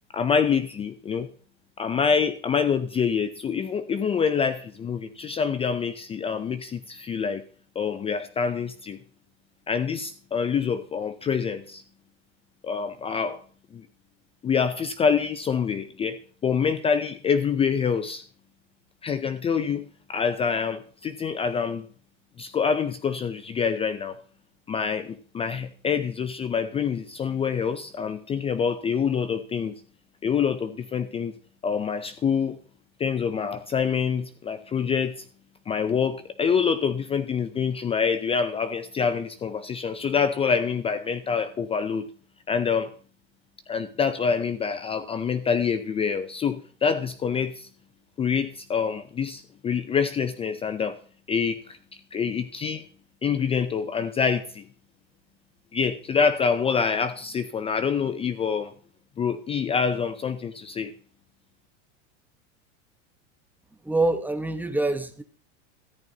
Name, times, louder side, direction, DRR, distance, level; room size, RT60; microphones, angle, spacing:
voice 1, 0.1-1.3 1.8-7.4 7.8-9.0 9.7-11.8 12.6-13.4 13.7-13.9 14.4-18.2 19.0-21.9 22.4-24.2 24.7-29.7 30.2-31.3 31.6-32.6 33.0-35.3 35.7-42.1 42.5-42.9 43.7-47.7 48.2-51.0 51.3-51.8 52.1-52.8 53.2-54.6 55.7-58.7 59.2-60.9, left 6 dB, 15° left, 0.5 m, -26 dB
voice 2, 63.8-65.2, right 2 dB, 5° right, 1.0 m, -25 dB
14.0 x 10.5 x 3.9 m
supercardioid pair, 135°, 35 cm